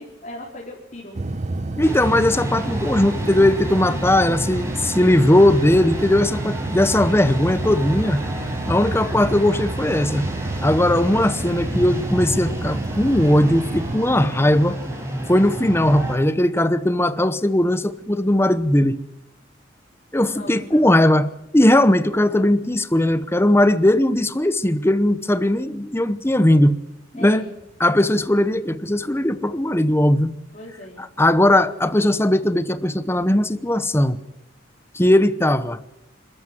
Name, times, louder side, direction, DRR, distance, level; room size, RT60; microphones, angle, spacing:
voice 1, 0.0-1.4 5.0-5.1 20.2-20.8 27.2-27.5 30.5-31.1, left 1 dB, 40° left, 4.4 m, -39 dB
sound 1, 1.1-14.0, right 2 dB, 35° right, 0.7 m, -30 dB
voice 2, 1.8-8.2 8.7-10.3 10.6-14.8 15.3-19.0 20.1-26.8 27.1-27.4 27.8-30.3 31.0-34.2 34.9-35.8, left 1 dB, 15° left, 0.9 m, -18 dB
sound 2, 1.8-16.2, right 1 dB, 15° right, 4.9 m, -31 dB
28.0 x 13.5 x 7.7 m
head